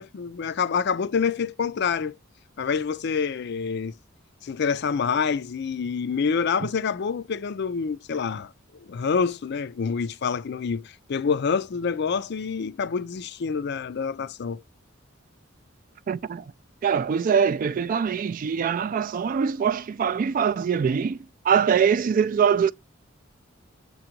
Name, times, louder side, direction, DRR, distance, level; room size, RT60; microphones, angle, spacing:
voice 1, 0.0-2.1 2.6-3.9 4.4-14.6, left 6 dB, 55° left, 0.4 m, -27 dB
voice 2, 16.1-16.4 16.8-21.2 21.4-22.7, right 7 dB, 45° right, 0.3 m, -23 dB
7.0 x 3.8 x 4.5 m
head